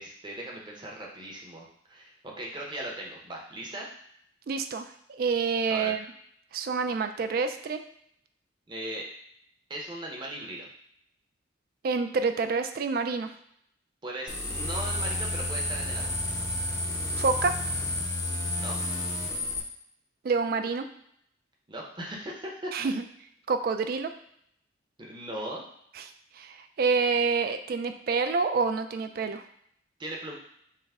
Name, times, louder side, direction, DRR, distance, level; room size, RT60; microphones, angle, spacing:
voice 1, 0.0-3.9 5.7-6.0 8.7-9.0 9.7-10.7 14.0-16.1 18.6-18.8 21.7-22.7 25.0-25.6 30.0-30.3, right 1 dB, 25° right, -2 dB, 0.7 m, -38 dB
voice 2, 4.5-6.0 6.5-7.8 11.8-13.3 17.2-17.5 20.2-20.8 22.7-23.0 23.5-24.1 26.4-29.4, right 4 dB, 50° right, 9 dB, 0.3 m, -27 dB
sound 1, 14.3-19.6, left 1 dB, 15° left, 0.5 m, -31 dB
5.5 x 2.1 x 3.5 m, 0.71 s
head